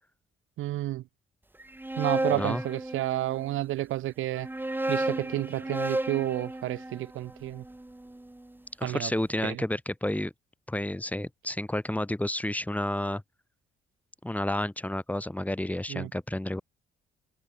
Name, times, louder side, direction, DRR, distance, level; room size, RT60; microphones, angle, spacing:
voice 1, 0.6-1.0 2.0-4.5 4.9-7.6 8.8-9.1 9.4-9.6 15.9-16.1, right 15 dB, 85° right, 3.4 m, -30 dB
sound 1, 1.6-3.5 4.3-8.4, right 1 dB, 10° right, 3.1 m, -33 dB
voice 2, 2.3-2.6 8.8-10.3 10.7-13.2 14.2-16.6, left 1 dB, 5° left, 4.2 m, -30 dB
cardioid pair, 90°, 20 cm